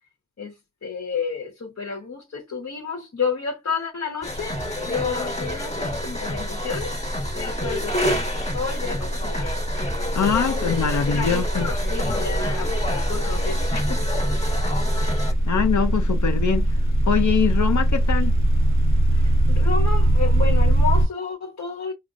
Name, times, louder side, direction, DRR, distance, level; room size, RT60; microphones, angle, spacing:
voice 1, 0.8-4.6 4.8-7.0 7.3-9.6 10.2-14.0 19.1-21.9, left 5 dB, 60° left, 1.0 m, -31 dB
sound 1, 4.2-15.3, left 1 dB, 20° left, 1.3 m, -29 dB
sound 2, 4.3-4.6 4.9-21.1, right 1 dB, 45° left, 1.3 m, -22 dB
voice 2, 10.1-11.7 15.5-16.7 17.1-18.3, left 7 dB, 75° left, 0.6 m, -23 dB
5.2 x 2.1 x 2.4 m
cardioid pair, 40°, 29 cm